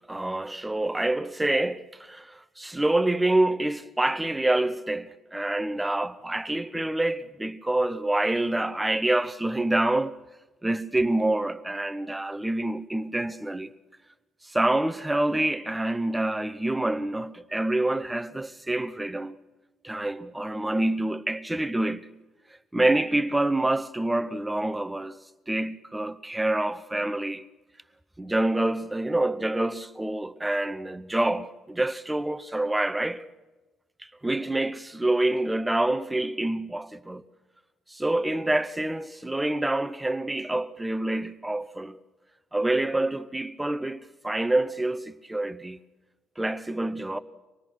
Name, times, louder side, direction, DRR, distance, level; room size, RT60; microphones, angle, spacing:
voice 1, 0.1-10.1 10.6-13.7 14.4-19.4 19.8-22.1 22.7-25.2 25.5-27.5 28.2-33.2 34.0-37.2 37.9-42.0 42.5-45.8 46.4-47.2, right 1 dB, 10° right, 0.7 m, -27 dB
25.5 x 20.0 x 6.2 m
cardioid pair, 135°, 0 cm